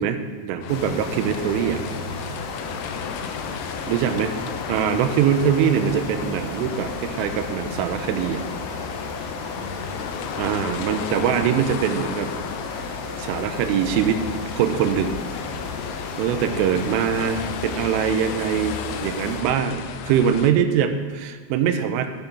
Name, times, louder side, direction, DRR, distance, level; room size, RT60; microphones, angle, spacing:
voice 1, 0.0-1.8 3.9-4.3 4.7-8.4 10.4-12.3 13.2-14.2 14.6-15.2 16.2-18.8 19.0-22.1, right 8 dB, 90° right, 8 dB, 3.2 m, -23 dB
sound 1, 0.6-20.5, left 8 dB, 90° left, 2.4 m, -34 dB
sound 2, 0.7-19.4, left 3 dB, 70° left, 2.9 m, -34 dB
voice 2, 3.1-4.2 9.4-10.3, equal, 45° left, -10 dB, 2.9 m, -46 dB
14.0 x 5.7 x 5.3 m, 1.4 s
omnidirectional pair, 5.6 m